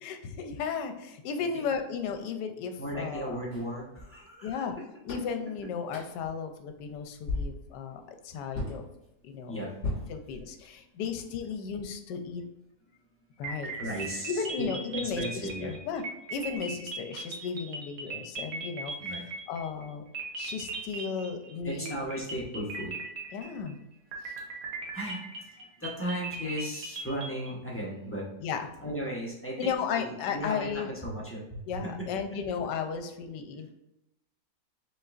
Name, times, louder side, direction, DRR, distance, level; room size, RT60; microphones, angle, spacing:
voice 1, 0.0-3.4 4.4-4.7 5.0-8.8 9.2-9.5 10.1-12.4 13.4-13.7 14.3-15.2 15.6-16.0 16.3-19.1 19.5-20.0 20.4-21.9 23.3-23.8 24.2-24.3 28.4-28.7 29.6-30.9 31.7-33.7, left 6 dB, 80° left, 6 dB, 1.2 m, -34 dB
voice 2, 2.8-4.8 9.5-9.7 13.7-14.7 14.9-15.8 19.0-19.2 21.6-22.9 24.3-24.5 24.9-28.2 28.8-32.1, equal, 10° left, -5 dB, 0.6 m, -36 dB
sound 1, 3.5-3.7 4.6-4.7 5.1-5.4 5.9-6.3 6.8-6.9 7.3-7.7 8.5-8.8 9.8-10.7, left 2 dB, 45° left, 2.1 m, -35 dB
sound 2, 13.4-19.8 20.1-21.5 21.9-23.7 24.1-27.5, right 3 dB, 60° right, 1.2 m, -39 dB
5.4 x 3.7 x 2.5 m, 0.87 s
omnidirectional pair, 1.9 m